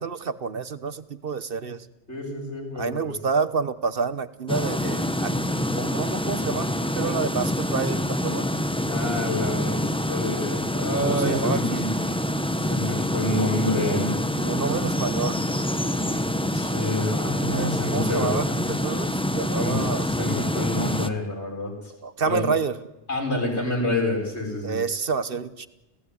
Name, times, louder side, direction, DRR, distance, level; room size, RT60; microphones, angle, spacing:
voice 1, 0.0-1.9 2.7-5.4 5.8-8.5 11.0-11.9 14.4-15.4 17.5-20.1 22.0-22.8 24.6-25.7, right 5 dB, 55° right, 14 dB, 1.2 m, -28 dB
voice 2, 2.1-3.1 8.9-11.9 12.6-14.1 16.5-18.5 19.6-19.8 20.2-21.7 22.3-22.4 23.1-24.8, left 1 dB, 80° left, 1 dB, 6.6 m, -28 dB
sound 1, 4.5-21.1, left 1 dB, 5° left, 1.0 m, -26 dB
29.5 x 16.5 x 9.7 m, 1.0 s
omnidirectional pair, 1.1 m